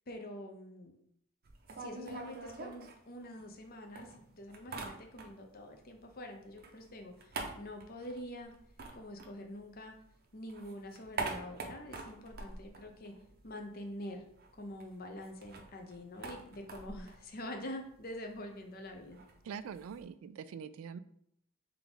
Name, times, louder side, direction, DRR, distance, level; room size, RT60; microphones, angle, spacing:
voice 1, 0.1-0.9 1.8-8.5 8.9-9.9 10.3-13.1 13.4-14.2 14.5-19.2, left 1 dB, 45° left, 4 dB, 0.7 m, -46 dB
sound 1, 1.4-3.6 4.0-5.6 5.9-10.0 10.3-13.6 13.9-14.0 14.2-20.0, right 3 dB, 50° right, 0.6 m, -45 dB
voice 2, 19.5-21.0, right 7 dB, 85° right, 15 dB, 0.3 m, -44 dB
3.5 x 3.5 x 3.9 m, 0.71 s
head